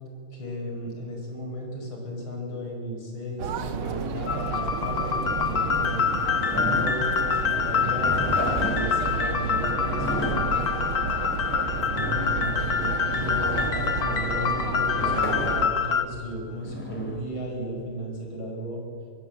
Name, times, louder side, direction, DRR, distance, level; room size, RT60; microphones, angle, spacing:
voice 1, 0.3-6.0 6.5-8.2 8.6-10.5 12.0-18.8, equal, 75° left, 0 dB, 6.2 m, -34 dB
sound 1, 3.4-15.7, right 6 dB, 85° right, 2.0 m, -32 dB
sound 2, 4.3-16.0, left 6 dB, 50° left, 1.6 m, -26 dB
sound 3, 6.5-17.9, right 1 dB, 5° left, 4.0 m, -34 dB
25.5 x 23.0 x 7.8 m, 2.4 s
omnidirectional pair, 2.2 m